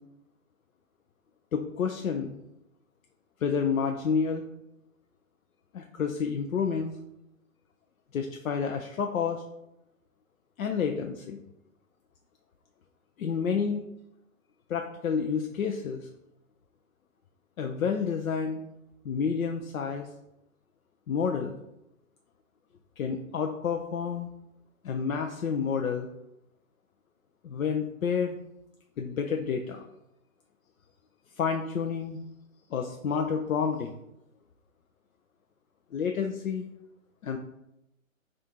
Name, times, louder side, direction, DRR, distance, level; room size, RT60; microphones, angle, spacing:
voice 1, 1.5-2.3 3.4-4.4 5.7-6.9 8.1-9.4 10.6-11.4 13.2-13.8 14.7-16.1 17.6-18.6 19.0-20.1 21.1-21.6 23.0-24.3 24.8-26.1 27.4-28.4 29.0-29.8 31.4-32.2 32.7-34.0 35.9-36.7 37.2-37.4, left 6 dB, 75° left, 4 dB, 0.5 m, -29 dB
5.6 x 2.5 x 2.8 m, 0.87 s
hypercardioid pair, 135°, 41 cm